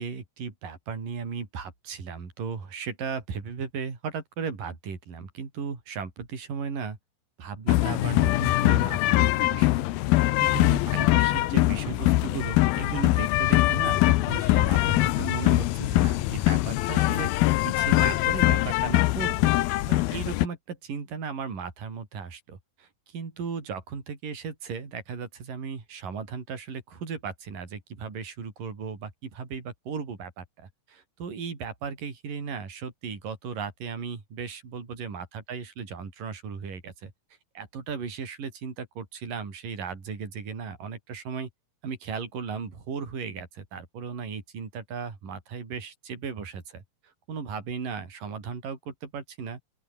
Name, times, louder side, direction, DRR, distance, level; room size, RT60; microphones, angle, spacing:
voice 1, 0.0-7.0 7.4-17.3 17.6-19.5 19.9-37.1 37.5-41.5 41.8-46.8 47.3-49.6, right 6 dB, 55° right, 6.5 m, -36 dB
sound 1, 7.7-20.5, left 18 dB, 75° left, 2.4 m, -23 dB
open air
omnidirectional pair, 4.7 m